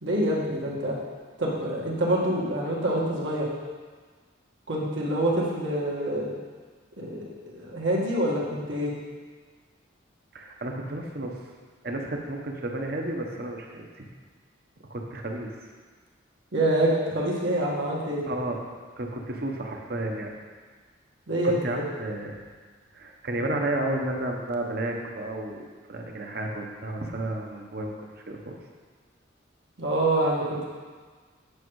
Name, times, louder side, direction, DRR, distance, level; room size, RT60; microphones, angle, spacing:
voice 1, 0.0-1.0 1.4-3.5 4.7-6.3 7.0-8.9 16.5-18.2 21.3-21.7 29.8-30.7, right 1 dB, 75° right, -4 dB, 1.9 m, -26 dB
voice 2, 10.3-11.4 11.8-14.0 14.9-15.5 18.2-18.6 19.0-20.3 21.4-22.4 22.9-25.6 25.9-28.0 28.3-28.6, right 1 dB, 50° right, 1 dB, 1.0 m, -32 dB
8.5 x 6.3 x 4.8 m, 1.5 s
head